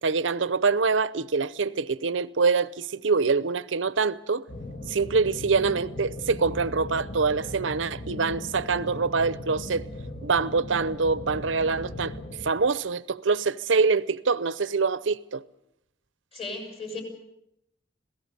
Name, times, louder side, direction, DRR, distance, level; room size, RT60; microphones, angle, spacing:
voice 1, 0.0-4.4 4.9-9.9 10.2-12.1 12.4-15.4, right 4 dB, 90° right, 0.7 m, -25 dB
sound 1, 4.5-12.5, left 2 dB, 50° left, 2.1 m, -38 dB
voice 2, 16.3-17.0, left 3 dB, 30° left, 6.2 m, -35 dB
26.5 x 17.5 x 6.8 m
head